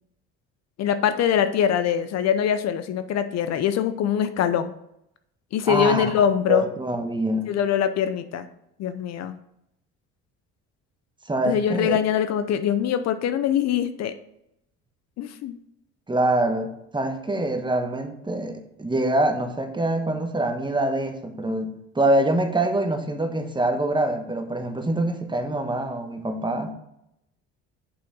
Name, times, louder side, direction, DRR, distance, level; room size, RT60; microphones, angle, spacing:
voice 1, 0.8-4.7 5.5-6.7 7.5-8.5 8.8-9.3 11.5-14.1 15.2-15.6, left 9 dB, 55° left, 11 dB, 0.6 m, -23 dB
voice 2, 5.7-6.1 6.5-7.5 11.3-12.0 16.1-26.7, right 1 dB, 15° right, 6 dB, 1.3 m, -25 dB
6.9 x 5.6 x 5.3 m, 0.80 s
supercardioid pair, 75°, 32 cm